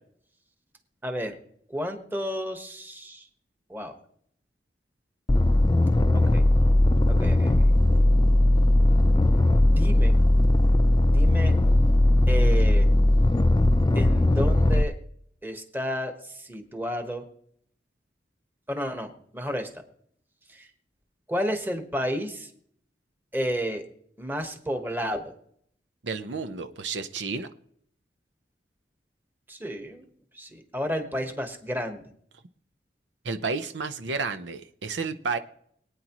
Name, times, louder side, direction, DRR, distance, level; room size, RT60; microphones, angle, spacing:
voice 1, 1.0-1.4 1.7-3.2 3.7-3.9 6.1-6.4 7.1-7.5 9.6-10.1 11.0-11.5 12.3-12.9 13.9-14.9 15.4-17.2 18.7-19.7 20.5-20.7 21.3-22.5 23.3-23.8 24.2-25.3 29.5-30.0 30.3-32.0, equal, 10° right, 1.3 m, -31 dB
sound 1, 5.3-14.8, left 1 dB, 20° left, 0.4 m, -19 dB
voice 2, 26.0-27.5 33.2-35.4, right 4 dB, 90° right, 0.8 m, -31 dB
22.5 x 9.3 x 3.0 m
head